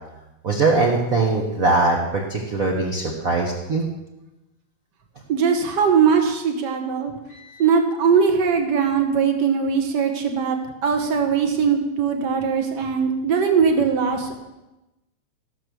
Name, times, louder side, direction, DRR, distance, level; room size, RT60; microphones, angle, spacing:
voice 1, 0.4-3.8 7.3-7.6, right 3 dB, 85° right, -1 dB, 0.7 m, -21 dB
voice 2, 5.3-7.1 7.6-10.6 10.8-14.3, right 6 dB, 65° right, 3 dB, 1.0 m, -20 dB
14.5 x 6.8 x 6.2 m, 1.0 s
omnidirectional pair, 3.6 m